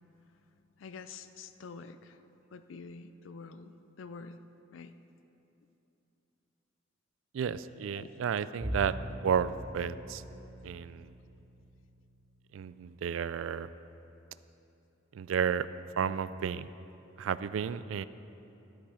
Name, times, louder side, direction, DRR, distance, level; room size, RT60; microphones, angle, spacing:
voice 1, 0.8-2.2 2.5-4.4 4.7-4.9 7.9-8.9, left 4 dB, 75° left, 11 dB, 0.4 m, -47 dB
voice 2, 7.3-8.9 9.2-10.2 10.6-11.1 12.5-13.7 15.1-15.7 16.0-16.7 17.2-18.0, right 7 dB, 80° right, 15 dB, 0.3 m, -32 dB
Bowed string instrument, 8.6-15.0, equal, 60° right, 1.9 m, -44 dB
12.5 x 8.7 x 4.9 m, 2.9 s
head